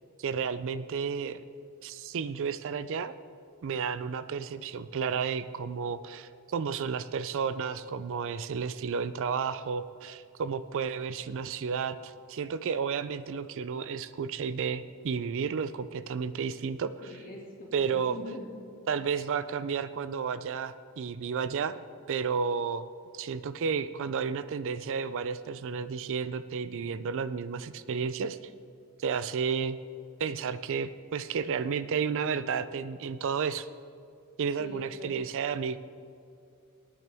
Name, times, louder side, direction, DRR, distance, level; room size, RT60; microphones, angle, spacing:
voice 1, 0.2-1.4 1.8-3.1 3.6-16.9 17.7-18.1 18.9-21.8 22.1-22.9 23.1-28.5 29.0-29.8 30.2-33.7 34.4-35.8, right 6 dB, 60° right, 14 dB, 0.4 m, -32 dB
voice 2, 17.0-18.6 34.6-35.1, left 2 dB, 40° left, -2 dB, 2.3 m, -43 dB
19.5 x 9.3 x 3.5 m, 2.4 s
head